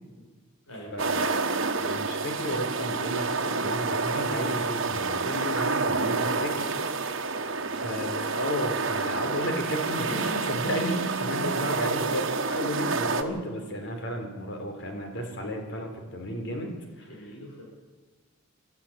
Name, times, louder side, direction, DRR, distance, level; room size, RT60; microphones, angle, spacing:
voice 1, 0.9-6.7 7.1-17.1, equal, 55° left, 3 dB, 3.9 m, -33 dB
sound 1, 1.0-13.2, right 4 dB, 60° right, 1.4 m, -29 dB
voice 2, 7.6-8.0 17.1-17.6, right 1 dB, 80° left, -3 dB, 7.2 m, -46 dB
24.0 x 13.5 x 8.8 m, 1.3 s
head